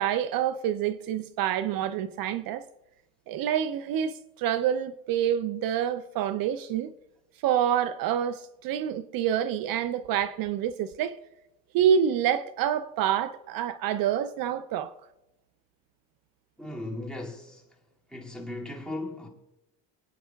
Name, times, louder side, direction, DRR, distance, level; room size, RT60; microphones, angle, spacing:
voice 1, 0.0-2.7 3.3-6.9 7.4-11.2 11.7-14.9, right 9 dB, 60° right, 0.6 m, -27 dB
voice 2, 16.6-17.6 18.1-19.3, left 2 dB, ahead, 2.3 m, -37 dB
25.5 x 9.2 x 2.3 m
cardioid pair, 135°, 39 cm